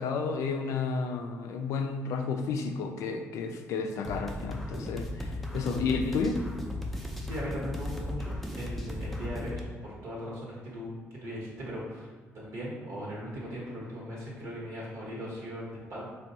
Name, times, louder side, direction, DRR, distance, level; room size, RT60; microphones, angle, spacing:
voice 1, 0.0-6.4, left 4 dB, 80° left, 5 dB, 0.3 m, -31 dB
sound 1, 4.0-9.6, left 1 dB, ahead, 0.4 m, -36 dB
voice 2, 7.3-10.9 11.2-12.1 12.3-16.1, equal, 85° right, -5 dB, 1.0 m, -39 dB
3.6 x 2.2 x 2.7 m, 1.4 s
cardioid pair, 95°, 5 cm